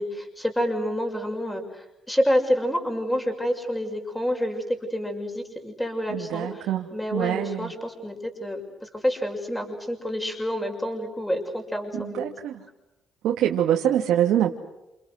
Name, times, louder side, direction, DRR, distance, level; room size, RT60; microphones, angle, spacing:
voice 1, 0.0-12.3, equal, 5° left, 3 dB, 6.5 m, -28 dB
voice 2, 6.1-6.8 7.1-7.7 12.0-12.5 13.2-14.5, right 11 dB, 85° right, 1 dB, 2.3 m, -24 dB
29.5 x 28.5 x 6.5 m, 0.96 s
cardioid pair, 90°, 0 cm